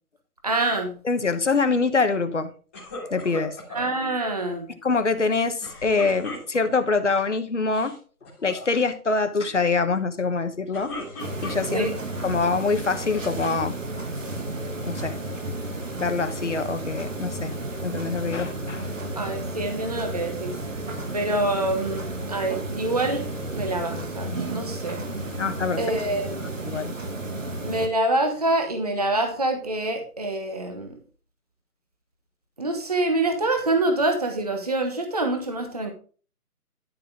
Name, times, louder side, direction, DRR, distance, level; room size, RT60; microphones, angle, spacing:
voice 1, 0.4-0.9 3.7-4.7 11.7-11.9 19.2-20.6 21.1-23.2 23.5-25.0 25.8-26.3 27.6-30.9 32.6-35.9, right 2 dB, 25° right, 1.2 m, -26 dB
voice 2, 1.0-2.5 3.1-3.6 4.8-8.0 8.4-10.9 11.4-11.9 12.2-13.8 14.8-15.2 16.0-17.5 17.8-18.9 25.4-25.8 26.6-26.9, left 4 dB, 50° left, 1.4 m, -24 dB
sound 1, 2.7-3.9 5.6-6.9 7.6-8.0 8.2-8.7 10.5-12.0 12.6-13.3, left 2 dB, 10° left, 2.1 m, -38 dB
sound 2, 11.2-27.9, right 2 dB, 55° right, 2.2 m, -32 dB
12.5 x 6.8 x 3.6 m
figure-of-eight pair, 170°, 45 cm